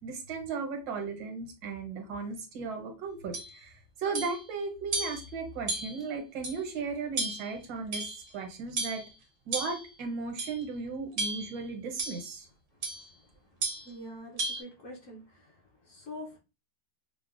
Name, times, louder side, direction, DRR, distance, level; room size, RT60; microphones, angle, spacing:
voice 1, 0.0-9.0 9.4-12.5, right 4 dB, 80° right, 3 dB, 1.6 m, -36 dB
sound 1, 3.3-3.5 4.1-4.4 4.9-5.3 5.7-6.0 6.4-6.6 7.2-7.5 7.9-8.3 8.8-9.1 9.5-9.9 10.4-10.6 11.2-11.6 12.0-12.2 12.8-13.1 13.6-13.9 14.4-14.6, right 3 dB, 55° right, 0.6 m, -34 dB
voice 2, 13.8-15.5 15.9-16.4, left 1 dB, 60° left, -1 dB, 0.9 m, -44 dB
4.7 x 2.1 x 2.4 m, 0.31 s
omnidirectional pair, 1.9 m